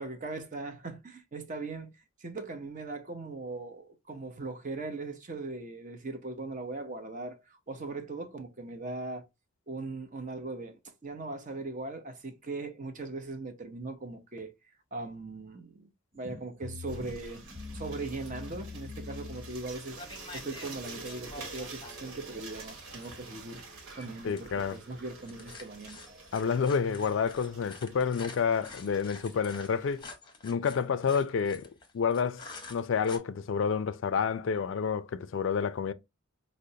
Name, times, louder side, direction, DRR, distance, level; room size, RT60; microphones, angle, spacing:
voice 1, 0.0-1.9 2.2-9.3 9.7-14.5 14.9-17.4 17.7-26.0, right 3 dB, 40° right, 0.6 m, -39 dB
sound 1, 16.1-29.4, left 2 dB, 60° right, 1.3 m, -48 dB
sound 2, 16.9-30.0, right 3 dB, 85° right, 1.1 m, -49 dB
sound 3, 19.9-33.2, left 3 dB, 20° left, 0.7 m, -48 dB
voice 2, 24.2-24.8 26.3-30.1 30.4-31.7 31.9-35.9, left 6 dB, 60° left, 0.4 m, -29 dB
4.9 x 2.1 x 2.7 m
head